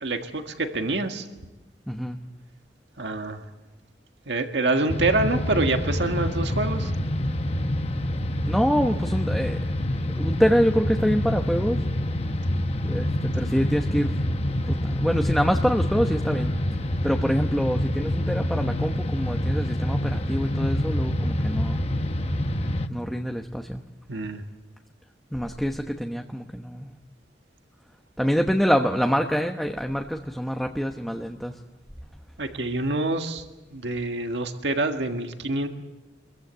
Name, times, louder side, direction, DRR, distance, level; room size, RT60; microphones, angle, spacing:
voice 1, 0.0-1.3 3.0-3.5 4.3-6.9 24.1-24.4 32.4-33.5 33.7-35.7, right 2 dB, 75° right, 5 dB, 1.7 m, -26 dB
voice 2, 1.9-2.2 8.5-9.6 10.2-11.9 12.8-21.8 22.9-23.8 25.3-26.9 28.2-31.6, equal, ahead, 3 dB, 1.0 m, -26 dB
sound 1, 4.9-22.9, left 1 dB, 35° left, 1.1 m, -26 dB
26.5 x 22.5 x 8.1 m, 1.1 s
head